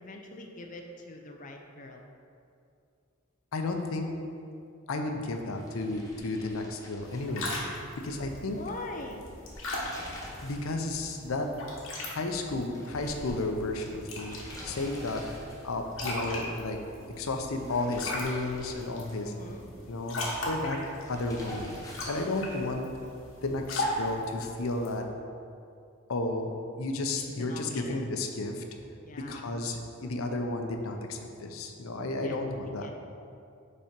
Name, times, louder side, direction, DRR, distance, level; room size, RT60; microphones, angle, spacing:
voice 1, 0.0-2.0 8.5-9.3 19.2-19.7 27.4-28.1 29.0-29.5 32.2-32.4 32.8-33.0, left 2 dB, 40° left, 2 dB, 0.6 m, -43 dB
voice 2, 3.5-4.1 4.9-7.6 8.0-8.6 10.4-11.5 12.1-14.4 14.6-15.2 15.6-16.8 17.2-19.3 19.9-20.2 20.5-20.8 21.1-21.8 22.1-22.9 23.4-25.1 26.1-28.6 29.1-32.9, left 2 dB, 85° left, 4 dB, 0.6 m, -32 dB
sound 1, 5.5-7.9 8.2-8.3 9.3-10.7 11.0-11.1 12.7-15.8 17.4-19.4 21.0-22.7, left 1 dB, 15° left, 0.9 m, -47 dB
sound 2, 7.0-25.0, left 1 dB, 70° left, 1.2 m, -39 dB
5.4 x 4.2 x 5.1 m, 2.5 s
head